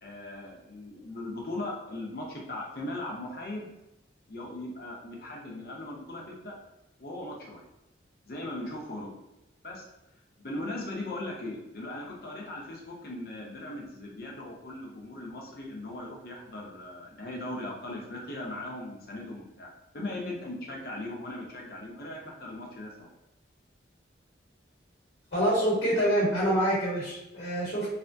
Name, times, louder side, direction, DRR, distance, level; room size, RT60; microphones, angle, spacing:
voice 1, 0.0-3.7 4.3-6.5 7.0-7.6 8.3-9.1 9.6-9.8 10.4-19.7 19.9-23.1, left 1 dB, 55° left, -2 dB, 0.7 m, -38 dB
voice 2, 25.3-27.9, right 1 dB, 75° left, -6 dB, 1.1 m, -26 dB
3.3 x 2.1 x 2.6 m, 0.91 s
head